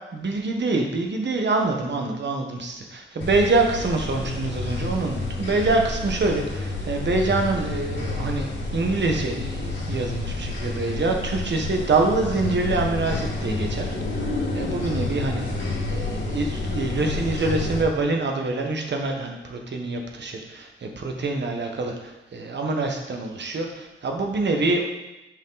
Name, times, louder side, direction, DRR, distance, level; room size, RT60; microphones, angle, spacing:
voice 1, 0.1-13.9 14.5-15.4 15.9-24.8, right 3 dB, 55° right, 2 dB, 1.4 m, -25 dB
sound 1, 3.2-17.8, left 2 dB, 55° left, 2.3 m, -29 dB
10.5 x 5.4 x 4.0 m, 1.0 s
wide cardioid pair, 105°, 21 cm